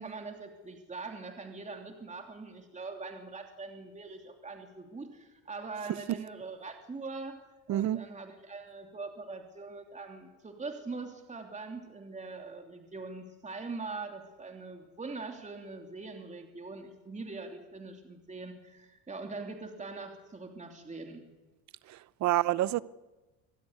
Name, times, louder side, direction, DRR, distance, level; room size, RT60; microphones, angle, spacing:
voice 1, 0.0-7.4 7.7-21.3, right 3 dB, 20° right, 3.1 m, -42 dB
voice 2, 7.7-8.0 21.9-22.8, right 14 dB, 50° right, 0.8 m, -28 dB
25.5 x 16.5 x 9.7 m
cardioid pair, 110°, 37 cm